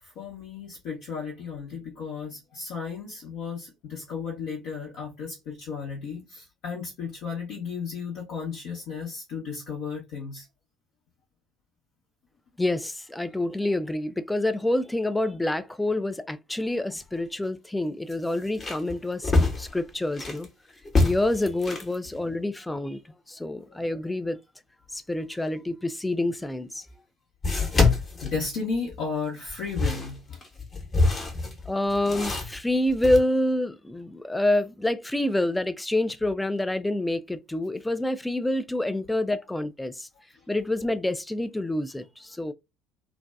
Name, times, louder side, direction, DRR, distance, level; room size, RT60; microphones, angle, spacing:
voice 1, 0.0-10.5 23.7-23.8 27.9-30.4, left 5 dB, 60° left, 0.7 m, -34 dB
voice 2, 12.6-20.5 21.0-23.0 23.3-24.4 24.9-26.9 31.7-40.1 40.5-42.5, left 1 dB, 10° left, 0.3 m, -27 dB
sound 1, 16.9-17.0 17.4-17.5 18.1-20.4 20.8-22.0 26.2-26.3 27.4-29.0 29.5-33.2, left 3 dB, 30° left, 0.9 m, -26 dB
2.5 x 2.2 x 2.2 m
figure-of-eight pair, 55°, 0 cm